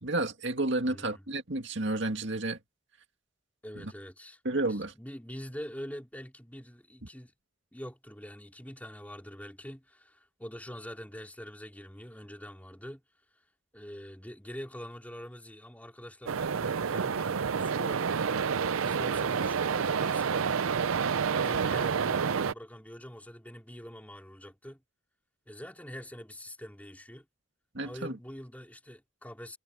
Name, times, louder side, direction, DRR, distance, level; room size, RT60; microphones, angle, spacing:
voice 1, 0.0-2.6 3.8-3.9 4.4-4.9 27.7-28.1, right 2 dB, 60° right, 2.1 m, -31 dB
voice 2, 0.8-1.3 3.6-4.4 4.7-7.3 7.7-13.0 13.7-20.6 21.2-24.8 25.5-27.3 27.8-29.6, equal, 10° left, 3.2 m, -45 dB
sound 1, 16.3-22.5, right 6 dB, 90° right, 0.6 m, -29 dB
head